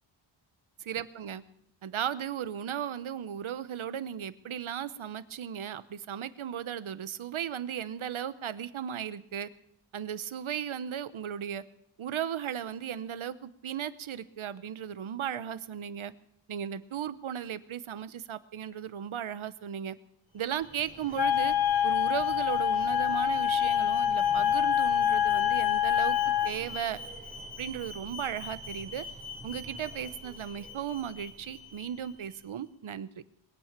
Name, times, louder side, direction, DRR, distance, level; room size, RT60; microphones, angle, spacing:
voice 1, 0.8-1.4 1.8-9.5 9.9-11.6 12.0-16.1 16.5-20.0 20.3-21.5 21.8-26.2 26.4-27.0 27.6-29.0 29.4-33.1, right 9 dB, 80° right, 15 dB, 0.9 m, -36 dB
Alarm, 20.4-32.4, left 1 dB, 15° right, 4.8 m, -44 dB
Wind instrument woodwind instrument, 21.1-26.5, left 10 dB, 50° left, 0.9 m, -26 dB
21.0 x 8.9 x 7.4 m, 0.73 s
wide cardioid pair, 105°, 48 cm